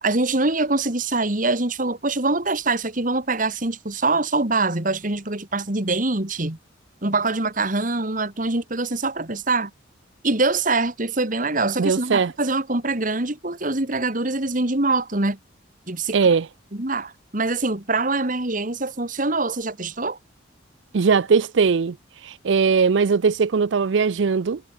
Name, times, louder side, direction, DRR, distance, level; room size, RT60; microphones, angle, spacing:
voice 1, 0.0-6.6 7.0-9.7 10.2-15.4 15.9-16.2 16.7-20.2, right 3 dB, 45° right, 2.3 m, -24 dB
voice 2, 11.8-12.3 16.1-16.5 20.9-22.0 22.2-24.6, right 5 dB, 70° right, 0.5 m, -19 dB
head